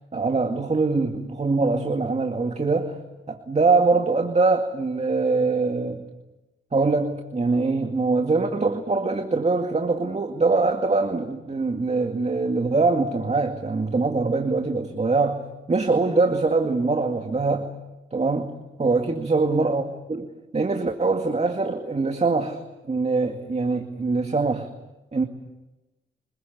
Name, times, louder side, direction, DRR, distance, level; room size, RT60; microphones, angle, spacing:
voice 1, 0.1-3.0 3.3-6.0 6.7-15.4 15.7-17.7 18.1-18.5 18.8-19.8 20.1-22.6 22.8-24.7 25.1-25.2, right 3 dB, 35° right, 4 dB, 2.2 m, -23 dB
25.5 x 22.0 x 8.5 m, 1.0 s
cardioid pair, 75°, 20 cm